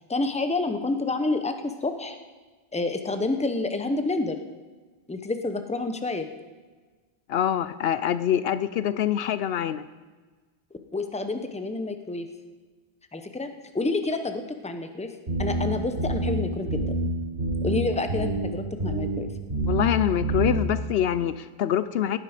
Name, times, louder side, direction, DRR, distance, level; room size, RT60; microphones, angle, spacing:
voice 1, 0.1-2.2 2.7-4.4 5.1-6.3 10.9-12.3 13.1-13.5 13.7-15.1 15.4-17.0 17.6-19.3, left 3 dB, 5° left, 7 dB, 0.8 m, -28 dB
voice 2, 7.3-9.8 19.7-22.2, left 10 dB, 75° left, 14 dB, 0.8 m, -25 dB
sound 1, 15.3-15.6 16.0-16.3 16.7-17.0 17.4-17.7 18.1-18.5 18.8-19.2 19.5-19.9 20.2-20.6, right 2 dB, 80° right, 5.5 m, -27 dB
17.0 x 9.9 x 5.0 m, 1.4 s
omnidirectional pair, 1.1 m